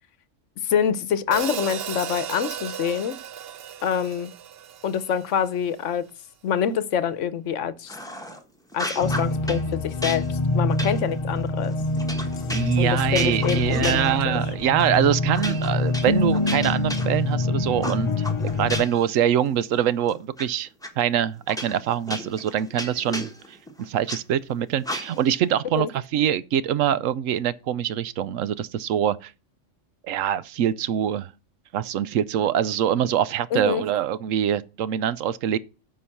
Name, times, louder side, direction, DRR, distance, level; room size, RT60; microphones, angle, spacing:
voice 1, 0.6-3.2 3.8-4.3 4.8-6.1 6.4-7.9 8.7-11.7 12.8-14.4 25.7-25.9 33.5-33.8, left 8 dB, 70° left, 1.1 m, -26 dB
Hi-hat, 1.3-5.6, right 9 dB, 60° right, 0.8 m, -35 dB
sound 1, 7.9-8.4 8.7-9.6 10.0-14.5 14.8-15.0 15.3-17.4 17.8-19.1 19.5-20.4 20.8-20.9 21.5-24.2 24.8-25.4, equal, 5° left, 1.2 m, -34 dB
sound 2, 9.0-18.8, left 2 dB, 35° left, 0.6 m, -25 dB
voice 2, 12.5-20.7 21.0-23.3 23.8-29.3 30.0-31.3 31.7-35.6, right 10 dB, 85° right, 1.0 m, -24 dB
9.8 x 5.4 x 5.8 m
omnidirectional pair, 1.3 m